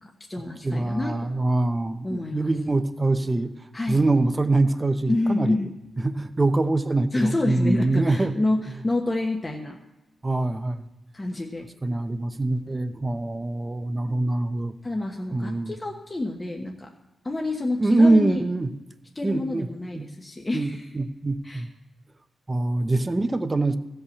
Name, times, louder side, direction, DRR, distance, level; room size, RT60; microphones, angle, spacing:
voice 1, 0.0-1.1 2.0-2.5 3.7-4.0 5.1-5.7 7.1-9.8 11.1-11.7 14.8-16.9 17.2-18.4 19.1-20.9 21.4-21.6, left 2 dB, 20° left, 0 dB, 1.2 m, -28 dB
voice 2, 0.6-3.5 3.9-5.6 6.0-8.3 10.2-10.9 11.8-14.7 15.3-15.7 17.8-18.7 19.2-19.7 19.9-20.1 20.5-21.7 22.5-23.8, right 2 dB, 25° right, 9 dB, 0.8 m, -24 dB
15.5 x 5.6 x 7.1 m, 1.0 s
cardioid pair, 85°, 0 cm